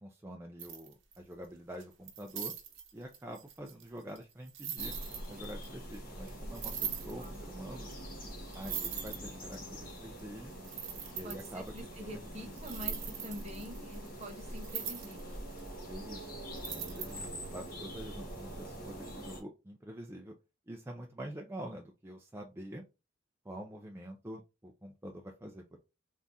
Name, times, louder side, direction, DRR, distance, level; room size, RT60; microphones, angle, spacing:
voice 1, 0.0-2.5 2.9-4.9 5.3-7.9 8.5-10.5 11.1-11.7 12.0-12.3 15.9-16.4 16.7-20.3 20.7-22.8 23.4-25.8, right 1 dB, 15° right, 0 dB, 0.5 m, -46 dB
sound 1, 0.6-1.3 1.8-5.7 5.9-6.0 6.3-6.4 6.5-7.4 7.9-8.0 8.2-8.3 8.5-9.6 10.2-10.3 10.6-11.8 12.6-15.2 15.6-15.7 16.6-17.3, right 8 dB, 80° right, 0.9 m, -41 dB
sound 2, 4.8-19.4, equal, 50° left, 1.4 m, -44 dB
voice 2, 7.2-7.5 11.2-15.4, equal, 35° right, 4 dB, 1.0 m, -46 dB
3.5 x 2.4 x 4.0 m, 0.26 s
head